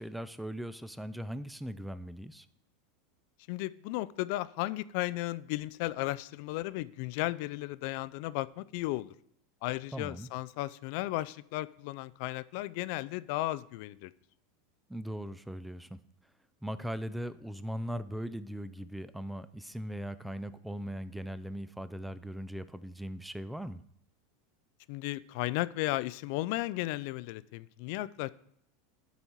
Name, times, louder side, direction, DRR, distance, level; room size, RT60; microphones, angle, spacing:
voice 1, 0.0-2.5 9.9-10.3 14.9-16.0 16.6-23.8, equal, 5° right, 13 dB, 0.4 m, -39 dB
voice 2, 3.5-9.1 9.6-14.1 24.9-28.3, left 18 dB, 60° left, 18 dB, 0.3 m, -35 dB
12.5 x 4.1 x 4.6 m, 0.70 s
hypercardioid pair, 105°, 0 cm